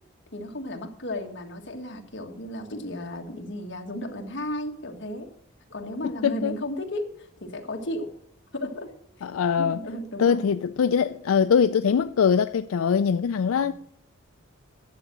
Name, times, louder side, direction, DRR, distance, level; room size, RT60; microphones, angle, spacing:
voice 1, 0.3-5.3 5.7-8.1 8.5-8.9 9.2-9.3 9.6-10.4 13.6-13.7, left 1 dB, 55° left, 1.6 m, -34 dB
voice 2, 6.2-6.6 9.2-9.8 10.2-13.7, left 6 dB, 85° left, 0.4 m, -22 dB
11.5 x 7.6 x 6.1 m
head